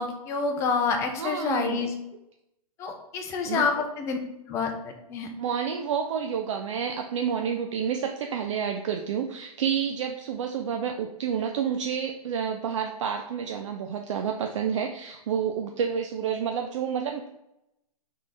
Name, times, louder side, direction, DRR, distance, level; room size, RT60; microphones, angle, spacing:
voice 1, 0.0-1.9 2.8-4.2 4.5-5.3, left 5 dB, 15° left, 4 dB, 0.5 m, -28 dB
voice 2, 1.1-1.9 3.4-3.7 5.4-17.3, right 7 dB, 50° right, 4 dB, 0.5 m, -29 dB
3.7 x 3.3 x 4.0 m, 0.86 s
hypercardioid pair, 145°, 20 cm